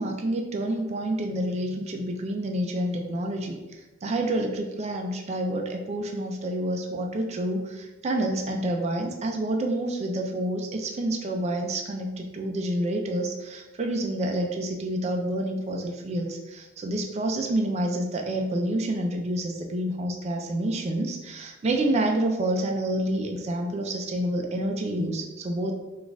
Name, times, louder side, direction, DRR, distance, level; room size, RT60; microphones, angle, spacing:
voice 1, 0.0-3.6 4.0-25.7, right 1 dB, 35° right, 2 dB, 0.4 m, -28 dB
4.1 x 2.4 x 3.4 m, 1.1 s
head